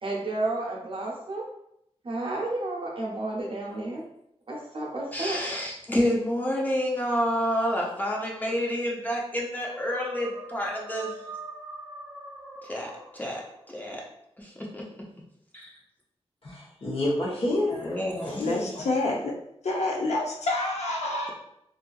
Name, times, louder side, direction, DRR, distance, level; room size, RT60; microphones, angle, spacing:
voice 1, 0.0-1.4 2.0-4.0 4.5-5.4, right 2 dB, 50° right, -2 dB, 0.7 m, -31 dB
voice 2, 5.1-11.2 12.6-13.4 13.7-14.0 14.4-14.9 15.5-15.7 17.8-18.4, equal, 15° left, -3 dB, 0.6 m, -29 dB
sound 1, 9.6-13.7, right 3 dB, 5° right, 0.9 m, -42 dB
voice 3, 16.4-18.8, left 1 dB, 55° left, -4 dB, 0.9 m, -29 dB
voice 4, 18.4-19.3 19.6-21.3, left 2 dB, 85° left, 0 dB, 0.6 m, -27 dB
2.7 x 2.4 x 2.3 m, 0.75 s
wide cardioid pair, 90°, 11 cm